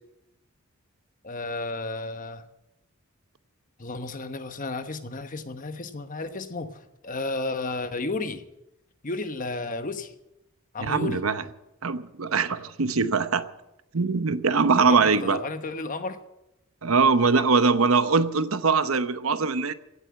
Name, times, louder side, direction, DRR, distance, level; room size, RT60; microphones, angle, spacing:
voice 1, 1.2-2.4 3.8-8.4 9.0-10.1 10.7-11.2 14.8-16.2, left 3 dB, 40° left, 9 dB, 1.1 m, -32 dB
voice 2, 10.8-11.4 11.8-13.4 13.9-15.4 16.8-19.7, right 4 dB, 75° right, 12 dB, 0.9 m, -22 dB
17.0 x 7.7 x 9.7 m, 0.89 s
head